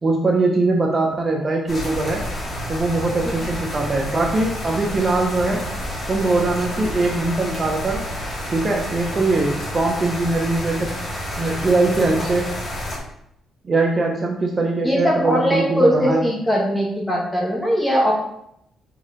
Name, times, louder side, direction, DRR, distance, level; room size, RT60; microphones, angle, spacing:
voice 1, 0.0-2.2 2.7-5.6 6.1-8.0 8.5-10.9 11.4-12.5 13.6-16.2, right 2 dB, 35° right, 0 dB, 1.1 m, -21 dB
sound 1, 1.7-13.0, equal, 30° left, 2.7 m, -30 dB
voice 2, 14.8-18.1, equal, 10° left, -3 dB, 2.3 m, -20 dB
4.9 x 4.8 x 5.3 m, 0.76 s
cardioid pair, 90°, 0 cm